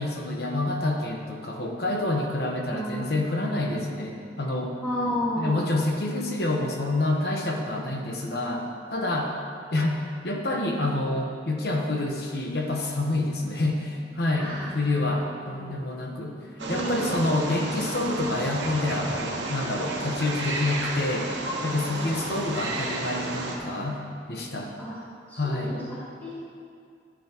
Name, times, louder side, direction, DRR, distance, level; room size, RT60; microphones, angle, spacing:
voice 1, 0.0-4.8 5.4-9.4 9.7-16.4 16.7-21.3 21.6-24.0 24.3-24.7 25.4-25.8, left 2 dB, 60° left, 1 dB, 1.1 m, -28 dB
voice 2, 2.7-3.6 4.8-5.8 14.4-15.1 15.5-15.7 16.6-17.3 19.9-20.1 21.9-22.2 24.8-24.9 25.3-25.8 26.2-26.3, left 1 dB, 10° left, -10 dB, 1.8 m, -32 dB
Wild animals, 16.6-23.6, right 2 dB, 75° right, 1.1 m, -32 dB
11.5 x 8.6 x 3.0 m, 2.3 s
head